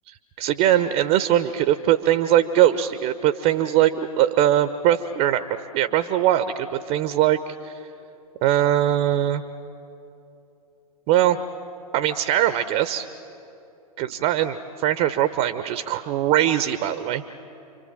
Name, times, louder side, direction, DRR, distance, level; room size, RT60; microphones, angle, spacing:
voice 1, 0.1-5.4 5.7-7.8 8.4-9.4 11.1-11.4 11.9-13.1 14.0-17.2, right 12 dB, 35° right, 11 dB, 1.0 m, -21 dB
29.5 x 24.5 x 7.5 m, 2.9 s
figure-of-eight pair, 100°, 19 cm